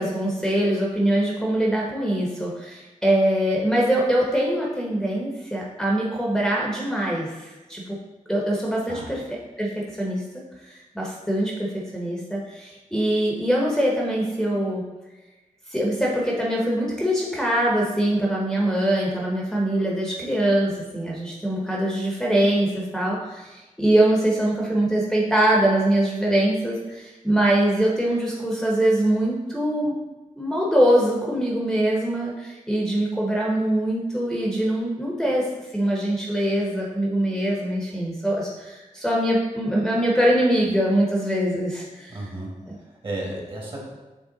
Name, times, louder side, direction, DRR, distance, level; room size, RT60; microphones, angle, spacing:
voice 1, 0.0-8.0 8.3-9.2 9.6-10.2 10.6-14.8 15.7-30.0 30.4-42.2 42.7-42.8, right 1 dB, 5° left, -4 dB, 0.8 m, -23 dB
voice 2, 42.1-43.8, right 1 dB, 40° right, -2 dB, 1.6 m, -34 dB
7.9 x 3.2 x 3.8 m, 1.1 s
wide cardioid pair, 140°, 13 cm